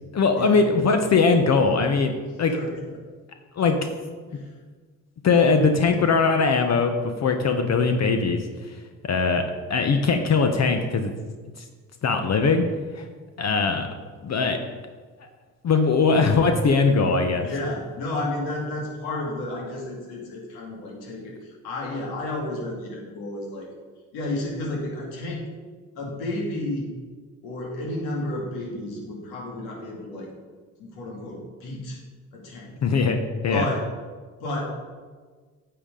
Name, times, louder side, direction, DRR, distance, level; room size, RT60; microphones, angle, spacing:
voice 1, 0.1-2.1 2.4-2.5 3.6-3.9 5.2-8.4 9.0-9.4 9.7-11.1 12.0-12.7 12.9-13.0 13.4-13.9 14.2-14.6 15.6-17.5 32.8-33.2 33.4-33.7, left 4 dB, 45° left, 6 dB, 1.0 m, -20 dB
voice 2, 2.2-3.0 4.3-4.5 17.4-23.7 24.1-25.4 26.0-26.9 27.4-30.3 30.8-32.0 32.3-32.7 33.5-33.8 34.4-34.7, left 1 dB, 75° left, -1 dB, 2.4 m, -32 dB
9.7 x 6.7 x 3.8 m, 1.4 s
hypercardioid pair, 60°, 38 cm